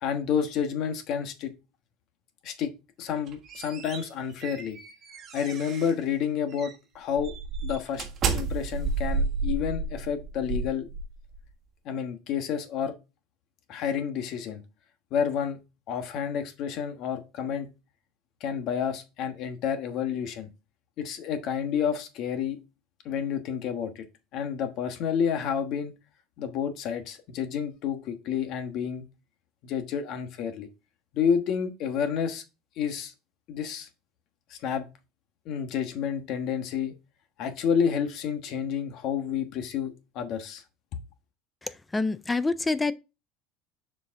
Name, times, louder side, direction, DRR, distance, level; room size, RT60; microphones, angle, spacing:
voice 1, 0.0-1.5 2.4-2.7 3.0-4.8 5.3-7.3 7.6-8.0 8.3-10.9 11.8-12.9 13.7-14.6 15.1-15.6 15.9-17.7 18.4-20.5 21.0-22.6 23.0-24.0 24.3-25.9 26.4-29.1 29.6-30.7 31.1-32.4 32.8-33.1 33.5-33.9 34.5-34.9 35.4-36.9 37.4-40.6, left 7 dB, 50° left, 1.2 m, -29 dB
sound 1, 3.1-6.0 6.5-6.7 7.2-11.4, right 4 dB, 35° right, 1.4 m, -31 dB
voice 2, 41.6-42.9, left 3 dB, 10° left, 0.3 m, -27 dB
6.7 x 4.8 x 3.6 m
supercardioid pair, 145°, 0 cm